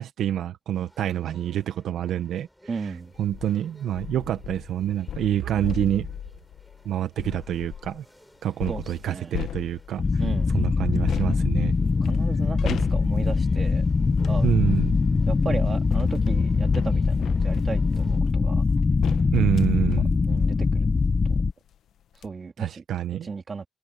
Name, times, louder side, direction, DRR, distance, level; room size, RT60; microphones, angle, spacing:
voice 1, 0.0-2.5 2.8-2.9 3.2-6.1 6.8-8.0 8.4-10.2 10.5-11.7 14.4-15.0 19.3-20.2 22.6-23.3, right 11 dB, 75° right, 1.1 m, -27 dB
sound 1, 0.7-18.2, equal, ahead, 7.5 m, -49 dB
voice 2, 2.7-3.1 5.5-5.9 8.7-9.4 10.2-10.5 12.0-13.8 14.3-14.5 15.3-18.6 20.3-20.9 21.3-21.4 22.2-22.8 23.2-23.6, right 4 dB, 35° right, 2.7 m, -35 dB
sound 2, 3.1-3.5 4.0-8.0 8.6-10.2 11.1-14.4 15.4-21.3 21.7-21.8 22.1-22.3, left 10 dB, 70° left, 0.9 m, -37 dB
sound 3, 10.0-21.5, left 4 dB, 30° left, 0.7 m, -22 dB
cardioid pair, 90°, 0 cm